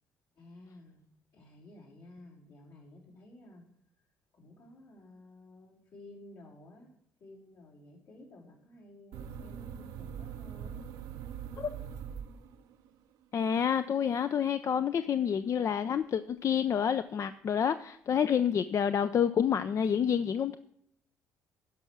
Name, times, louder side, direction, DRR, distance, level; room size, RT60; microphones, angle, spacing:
voice 1, 0.3-1.0 1.3-3.6 4.3-6.9 7.2-10.8, left 1 dB, 70° left, 3.6 m, -53 dB
sound 1, 9.1-12.9, right 8 dB, 75° right, 0.6 m, -42 dB
voice 2, 13.3-20.6, left 8 dB, 45° left, 0.4 m, -28 dB
12.0 x 5.4 x 6.1 m
hypercardioid pair, 55°, 7 cm